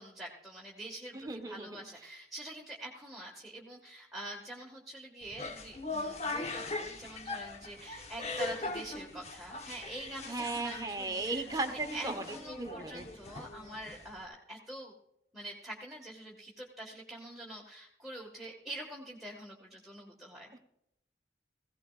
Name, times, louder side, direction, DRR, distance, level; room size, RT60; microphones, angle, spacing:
voice 1, 0.0-14.9 15.3-20.5, right 1 dB, ahead, -3 dB, 1.5 m, -45 dB
voice 2, 1.1-1.8 10.3-12.2 12.6-13.0, right 3 dB, 20° right, 5 dB, 1.0 m, -36 dB
sound 1, 5.2-14.3, left 3 dB, 40° left, 1.0 m, -40 dB
18.0 x 16.5 x 2.4 m, 0.80 s
head